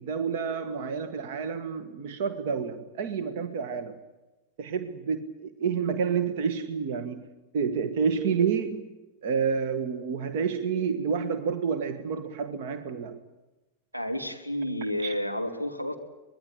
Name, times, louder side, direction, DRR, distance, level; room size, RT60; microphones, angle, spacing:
voice 1, 0.0-4.0 4.6-8.9 9.2-13.2 15.0-15.1, right 6 dB, 50° right, 1.5 m, -29 dB
voice 2, 13.9-15.9, left 1 dB, 85° right, 3.0 m, -31 dB
24.5 x 21.0 x 8.7 m
figure-of-eight pair, 90°, 0 cm